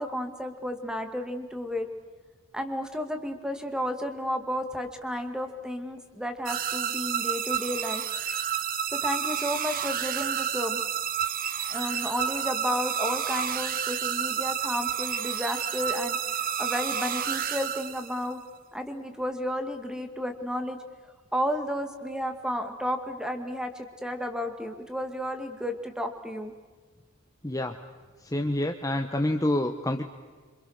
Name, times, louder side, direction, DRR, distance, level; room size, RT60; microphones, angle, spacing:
voice 1, 0.0-1.9 2.5-8.0 8.9-10.8 11.7-16.2 16.6-18.4 18.7-20.8 21.3-26.5, equal, 5° right, 6 dB, 2.0 m, -32 dB
sound 1, 6.5-18.3, right 9 dB, 40° right, 0.9 m, -30 dB
voice 2, 27.4-27.7 28.2-30.0, left 1 dB, 15° left, 5 dB, 1.0 m, -27 dB
27.0 x 26.0 x 6.6 m, 1.4 s
head